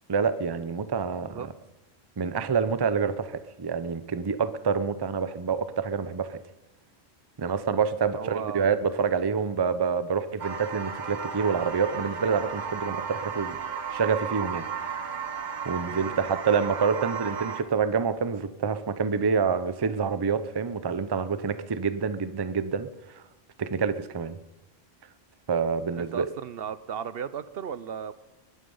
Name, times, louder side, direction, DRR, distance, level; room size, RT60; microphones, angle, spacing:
voice 1, 0.1-1.5 2.2-6.4 7.4-13.6 13.9-15.1 15.6-22.9 23.6-24.4 25.5-26.3, right 6 dB, 30° right, 12 dB, 0.6 m, -27 dB
voice 2, 8.1-8.7 15.9-16.3 26.0-28.1, right 8 dB, 65° right, 14 dB, 0.9 m, -36 dB
sound 1, 10.4-17.6, right 6 dB, 45° right, 1.1 m, -34 dB
22.0 x 11.5 x 5.5 m, 1.1 s
omnidirectional pair, 1.1 m